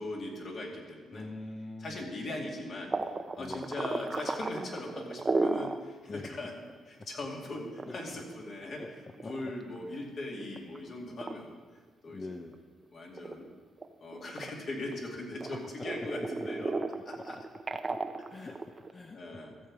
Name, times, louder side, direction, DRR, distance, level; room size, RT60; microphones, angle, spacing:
voice 1, 0.0-1.3 1.8-2.9 3.3-6.5 6.9-11.6 12.0-12.2 12.9-13.5 14.0-16.7 17.1-17.4 18.4-18.5 19.1-19.6, left 2 dB, 50° left, -1 dB, 2.4 m, -40 dB
voice 2, 1.1-2.1 3.4-3.8 6.1-6.4 7.9-8.0 8.8-8.9 9.2-9.5 9.9-10.1 12.1-12.6 15.5-15.6 16.4-16.5 17.2-17.3 17.7-18.6 18.9-19.4, left 2 dB, 30° left, 5 dB, 0.6 m, -44 dB
sound 1, 2.9-5.8 6.2-6.3 6.7-6.8 7.6-9.9 10.4-10.8 11.2-11.3 11.9-12.8 13.1-15.0 15.4-18.9, right 3 dB, 25° right, 0.6 m, -34 dB
13.5 x 7.2 x 4.9 m, 1.5 s
cardioid pair, 90°, 0 cm